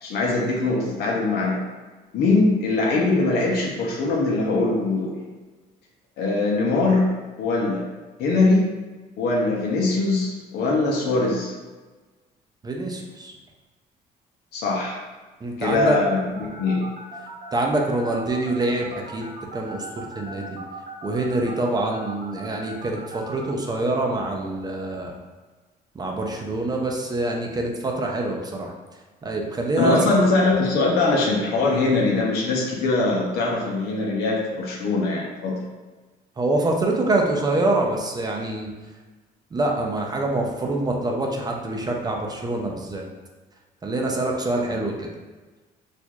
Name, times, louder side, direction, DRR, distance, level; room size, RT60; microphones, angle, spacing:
voice 1, 0.0-1.6 2.1-5.2 6.2-7.1 7.4-7.8 8.2-8.6 9.2-11.5 14.5-15.0 15.6-16.8 29.8-35.6, left 3 dB, 75° left, -3 dB, 0.7 m, -22 dB
voice 2, 12.6-13.3 15.4-16.0 17.5-19.3 19.5-20.6 21.0-25.1 25.9-28.7 29.2-30.2 36.4-38.7 39.5-43.0 43.8-45.1, right 2 dB, 25° right, 0 dB, 0.5 m, -25 dB
sound 1, 16.4-23.5, right 3 dB, 80° right, 0.7 m, -38 dB
4.3 x 2.5 x 2.3 m, 1.3 s
cardioid pair, 110°, 17 cm